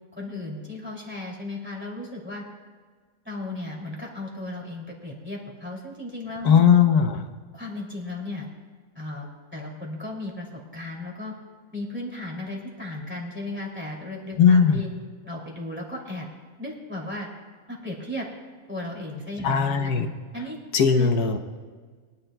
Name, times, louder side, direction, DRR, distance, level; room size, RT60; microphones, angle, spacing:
voice 1, 0.1-2.4 3.2-6.6 7.5-8.5 9.0-9.3 9.5-10.5 10.7-11.3 11.7-14.9 15.2-16.3 16.6-17.3 17.7-18.3 18.7-19.9 20.3-20.6 20.9-21.1, left 2 dB, 5° right, -3 dB, 2.6 m, -35 dB
voice 2, 6.4-7.2 14.4-14.8 19.4-20.1 20.7-21.4, left 7 dB, 75° left, 6 dB, 1.3 m, -18 dB
23.0 x 10.5 x 2.2 m, 1.5 s
omnidirectional pair, 1.7 m